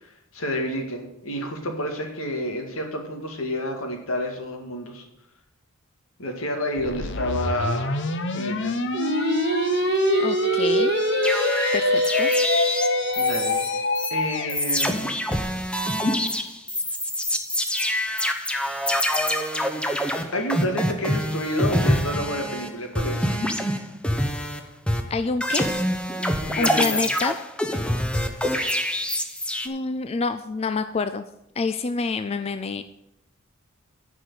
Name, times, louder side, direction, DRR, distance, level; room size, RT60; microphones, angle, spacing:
voice 1, 0.0-5.1 6.2-8.1 8.3-8.8 13.2-13.6 14.1-15.1 20.3-23.4 26.4-27.1, equal, 75° left, 3 dB, 1.9 m, -29 dB
sound 1, 6.8-14.6, left 4 dB, 60° left, 0.8 m, -26 dB
Singing, 8.9-14.1, right 1 dB, 50° right, 0.8 m, -25 dB
voice 2, 10.2-10.9 11.7-12.3 25.1-25.7 26.6-27.4 29.6-31.2 31.6-32.8, left 4 dB, 30° left, 10 dB, 0.3 m, -27 dB
sound 2, 11.2-13.7 13.9-14.1 14.5-22.7 22.9-24.6 24.9-29.7, equal, 5° left, 0.8 m, -25 dB
10.0 x 4.9 x 8.1 m, 0.84 s
head